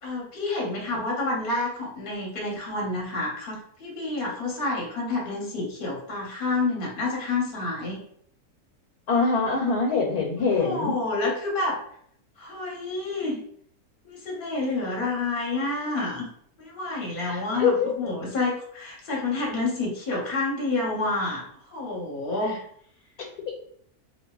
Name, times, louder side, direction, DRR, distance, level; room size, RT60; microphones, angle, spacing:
voice 1, 0.0-8.0 10.4-11.8 12.4-13.4 14.1-16.3 16.6-22.6, left 2 dB, 45° left, -2 dB, 0.8 m, -29 dB
voice 2, 9.1-10.9 17.3-17.9, left 4 dB, 90° left, 0 dB, 1.2 m, -24 dB
3.1 x 2.4 x 2.2 m, 0.64 s
omnidirectional pair, 1.6 m